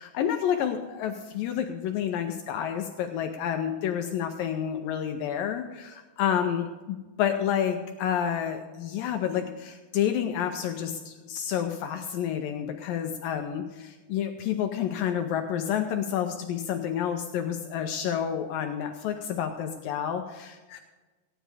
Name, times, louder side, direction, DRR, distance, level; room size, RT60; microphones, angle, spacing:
voice 1, 0.0-20.8, left 9 dB, 80° left, 5 dB, 2.1 m, -29 dB
15.5 x 10.5 x 4.8 m, 1.3 s
omnidirectional pair, 4.6 m